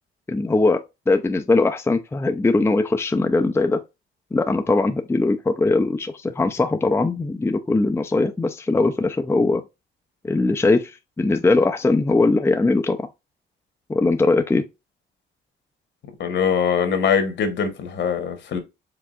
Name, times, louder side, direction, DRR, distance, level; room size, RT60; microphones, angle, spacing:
voice 1, 0.3-3.8 4.3-9.6 10.2-13.1 13.9-14.6, left 3 dB, 10° left, 0.5 m, -20 dB
voice 2, 16.2-18.6, left 6 dB, 65° left, 1.3 m, -22 dB
4.8 x 3.4 x 2.4 m
cardioid pair, 90°, 20 cm